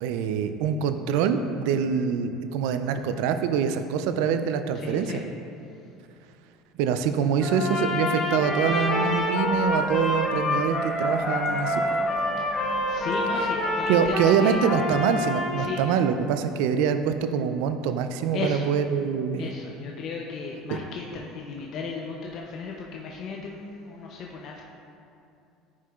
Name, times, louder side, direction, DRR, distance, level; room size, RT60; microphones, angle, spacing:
voice 1, 0.0-5.1 6.8-11.8 13.9-19.5 20.7-20.8, right 7 dB, 75° right, 9 dB, 0.3 m, -25 dB
voice 2, 4.7-5.2 9.2-9.5 11.9-14.6 15.6-16.0 18.3-18.7 19.4-24.6, left 4 dB, 55° left, -1 dB, 0.5 m, -35 dB
Trumpet, 7.4-15.7, left 1 dB, 30° left, 0.9 m, -27 dB
sound 1, 8.3-14.5, left 2 dB, 70° left, 1.0 m, -40 dB
9.5 x 4.8 x 2.3 m, 2.6 s
supercardioid pair, 95°, 0 cm